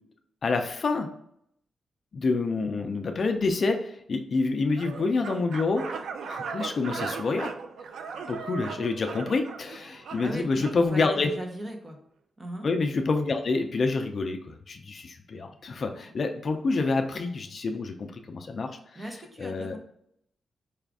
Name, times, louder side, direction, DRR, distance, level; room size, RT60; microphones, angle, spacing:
voice 1, 0.4-1.1 2.1-5.9 6.3-7.5 8.3-11.3 12.6-19.0 19.4-19.8, left 3 dB, 45° left, 5 dB, 0.4 m, -27 dB
sound 1, 4.8-10.8, right 5 dB, 85° right, 0.3 m, -38 dB
voice 2, 10.2-12.0 12.4-12.7 19.0-19.8, right 1 dB, 25° right, 3 dB, 0.7 m, -37 dB
4.8 x 2.4 x 3.5 m, 0.71 s
wide cardioid pair, 155°, 0 cm